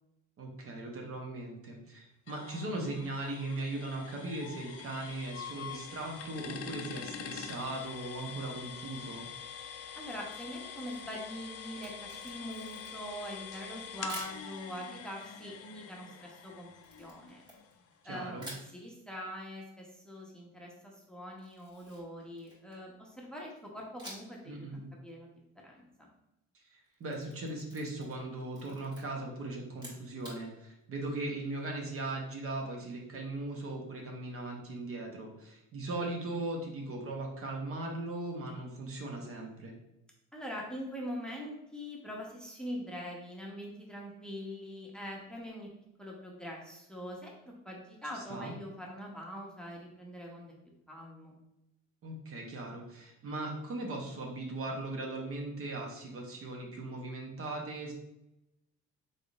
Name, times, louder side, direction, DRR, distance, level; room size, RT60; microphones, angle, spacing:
voice 1, 0.4-9.3 18.0-18.5 24.5-24.9 26.5-39.7 48.1-48.5 52.0-57.9, right 2 dB, 45° right, 1 dB, 0.8 m, -39 dB
sound 1, 2.3-17.9, left 7 dB, 50° left, 0.4 m, -45 dB
voice 2, 10.0-16.7 17.0-17.4 18.0-18.4 18.7-24.7 25.0-25.3 25.6-26.1 40.3-45.7 46.0-50.5 50.9-51.3, equal, 5° left, -2 dB, 0.7 m, -43 dB
Camera, 11.7-13.2 14.1-14.4 16.8-18.0 18.4-18.7 21.4-22.9 24.0-24.4 24.7-24.8 26.8-28.2 28.5-29.0 29.7-30.4, equal, 15° right, 1.5 m, -49 dB
3.9 x 3.5 x 2.4 m, 0.87 s
cardioid pair, 110°, 32 cm